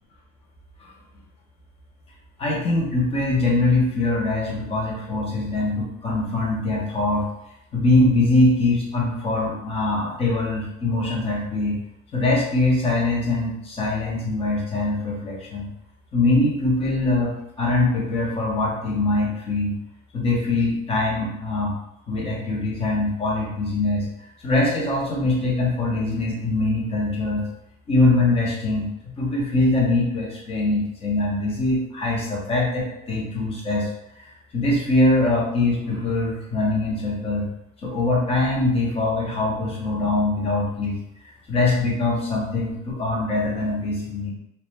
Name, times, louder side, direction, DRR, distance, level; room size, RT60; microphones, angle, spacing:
voice 1, 2.4-7.3 7.7-11.8 12.1-15.7 16.1-19.7 20.1-21.7 22.1-24.1 24.4-27.4 27.9-28.9 29.2-33.9 34.5-37.5 37.8-41.0 41.5-44.3, left 2 dB, 15° left, -3 dB, 0.5 m, -22 dB
2.5 x 2.1 x 3.0 m, 0.83 s
supercardioid pair, 140°, 42 cm